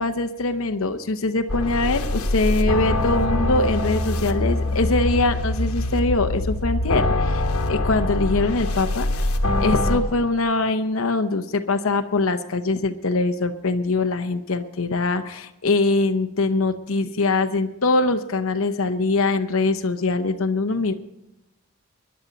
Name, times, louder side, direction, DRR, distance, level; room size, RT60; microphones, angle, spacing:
voice 1, 0.0-9.3 9.6-20.9, left 3 dB, 70° left, 8 dB, 0.8 m, -23 dB
sound 1, 1.5-10.0, left 1 dB, 90° left, 1.3 m, -23 dB
23.0 x 10.5 x 4.0 m, 0.90 s
head